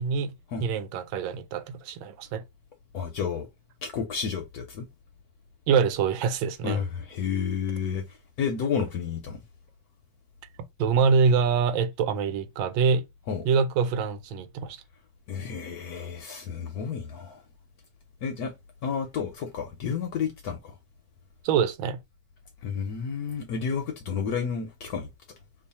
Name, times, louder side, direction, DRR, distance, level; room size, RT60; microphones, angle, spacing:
voice 1, 0.0-0.3 0.6-2.4 5.7-6.8 10.8-13.0 13.4-14.8 21.4-22.0, right 6 dB, 80° right, 1.3 m, -25 dB
voice 2, 2.9-3.5 3.8-4.9 6.6-9.4 13.3-13.5 15.3-17.4 18.2-18.5 18.8-20.8 22.6-25.1, left 6 dB, 75° left, 0.9 m, -31 dB
3.1 x 2.2 x 4.0 m
omnidirectional pair, 2.1 m